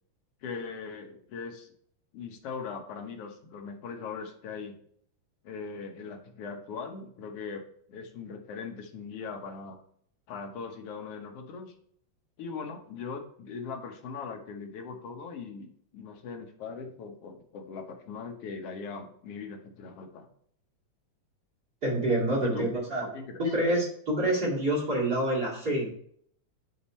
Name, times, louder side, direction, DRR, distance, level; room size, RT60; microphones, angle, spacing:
voice 1, 0.4-1.7 2.1-4.8 5.4-7.6 7.9-9.8 10.3-11.7 12.4-20.3 22.4-22.7 23.0-23.3, left 5 dB, 65° left, 3 dB, 1.8 m, -40 dB
voice 2, 21.8-23.1 23.4-25.9, right 1 dB, 35° right, -4 dB, 2.4 m, -27 dB
10.0 x 3.6 x 4.2 m, 0.65 s
omnidirectional pair, 3.4 m